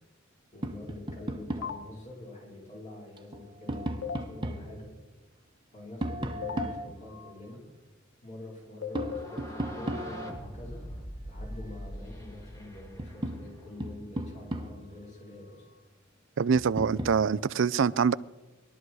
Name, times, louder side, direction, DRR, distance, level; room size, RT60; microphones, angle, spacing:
voice 1, 0.5-4.9 5.7-7.6 8.2-10.8 11.3-15.7, left 1 dB, 35° left, 5.2 m, -45 dB
Tap, 0.6-1.8 3.2-4.7 6.0-7.4 8.9-10.5 12.3-12.4 12.8-15.0 16.5-17.2, right 1 dB, 25° right, 1.2 m, -36 dB
sound 1, 1.6-1.8 4.0-4.2 6.4-6.6 8.8-9.2, left 7 dB, 65° left, 1.3 m, -34 dB
sound 2, 9.0-13.8, equal, 15° left, 2.3 m, -43 dB
voice 2, 16.4-18.1, right 6 dB, 65° right, 0.5 m, -25 dB
21.5 x 12.5 x 4.8 m
head